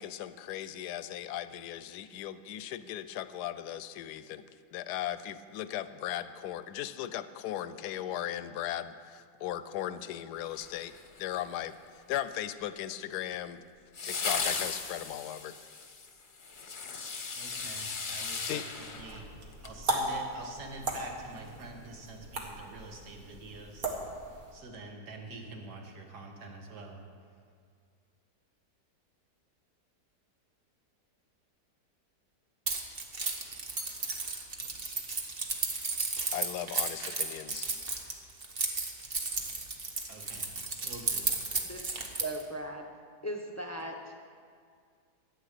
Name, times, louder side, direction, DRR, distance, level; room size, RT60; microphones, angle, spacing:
voice 1, 0.0-4.4 4.7-13.6 14.0-15.5 18.5-18.6 36.3-37.7, left 12 dB, 75° left, 14 dB, 1.1 m, -37 dB
sound 1, 10.5-11.4 13.9-19.8 20.1-20.2, left 4 dB, 35° left, 0.9 m, -37 dB
voice 2, 17.3-19.2 19.6-23.9 24.5-27.0 40.1-40.5 40.8-41.3, right 2 dB, 75° right, 2 dB, 2.0 m, -46 dB
sound 2, 18.7-24.5, right 2 dB, 60° right, 1.8 m, -37 dB
Keys jangling, 32.7-42.4, right 4 dB, 40° right, 1.2 m, -33 dB
voice 3, 42.2-42.9 43.2-44.1, right 1 dB, 20° left, 3 dB, 0.4 m, -38 dB
13.0 x 9.0 x 6.6 m, 2.1 s
omnidirectional pair, 1.8 m